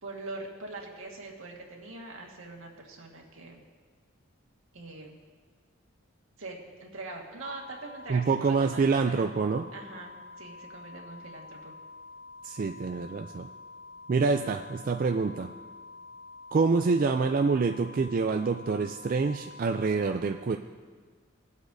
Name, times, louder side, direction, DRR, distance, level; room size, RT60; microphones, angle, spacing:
voice 1, 0.0-3.6 4.7-5.2 6.4-9.3 9.7-11.7, right 2 dB, 80° right, 0 dB, 1.7 m, -43 dB
sound 1, 7.4-20.0, left 3 dB, 40° left, 2.0 m, -48 dB
voice 2, 8.1-9.6 12.4-13.5 14.1-15.5 16.5-20.6, right 4 dB, 40° right, 5 dB, 0.3 m, -26 dB
19.5 x 8.1 x 2.7 m, 1.5 s
head